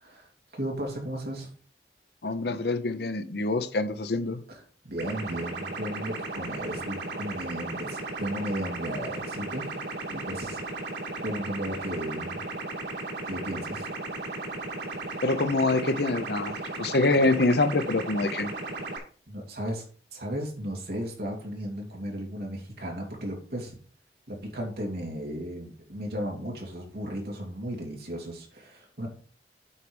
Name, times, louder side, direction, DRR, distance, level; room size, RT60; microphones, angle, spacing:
voice 1, 0.0-1.5 4.5-9.7 10.1-10.6 11.2-12.4 13.2-13.9 19.3-19.8 20.1-23.8 24.3-29.1, equal, 60° right, 2.6 m, -35 dB
voice 2, 2.2-4.4 15.2-18.5, left 2 dB, 70° left, 0.8 m, -25 dB
sound 1, 5.0-19.0, right 2 dB, 85° right, 2.4 m, -35 dB
8.4 x 4.7 x 5.2 m
head